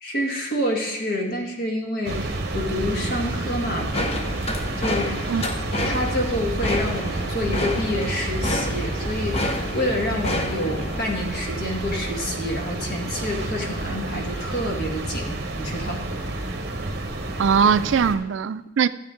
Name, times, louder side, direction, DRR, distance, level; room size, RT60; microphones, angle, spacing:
voice 1, 0.0-3.9 4.8-5.3 5.8-16.4, left 1 dB, 50° left, 0 dB, 1.8 m, -28 dB
sound 1, 2.0-18.2, right 2 dB, 55° right, 1.1 m, -30 dB
sound 2, 3.9-11.0, left 1 dB, 30° left, 0.8 m, -29 dB
voice 2, 5.3-5.7 17.4-18.9, right 6 dB, 70° right, 14 dB, 0.4 m, -21 dB
13.0 x 8.1 x 3.8 m, 0.98 s
head